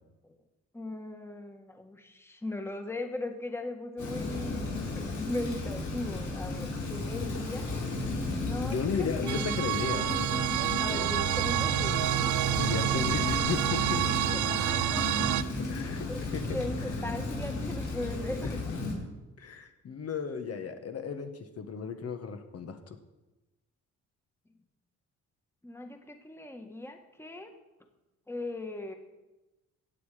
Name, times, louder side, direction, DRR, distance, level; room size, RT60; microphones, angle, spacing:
voice 1, 0.7-4.7 4.9-7.7 8.4-9.5 10.5-11.9 14.3-15.3 16.1-18.6 25.6-27.5 28.3-29.0, left 1 dB, 10° left, 5 dB, 1.6 m, -38 dB
Rain, 4.0-18.9, left 2 dB, 75° left, 5.3 m, -34 dB
voice 2, 8.6-10.1 12.5-14.3 15.6-16.6 18.4-18.6 19.4-23.0, left 5 dB, 55° left, 6 dB, 1.5 m, -35 dB
sound 1, 9.3-15.4, right 14 dB, 75° right, 0.6 m, -28 dB
16.5 x 8.9 x 5.0 m, 1.0 s
cardioid pair, 90°, 30 cm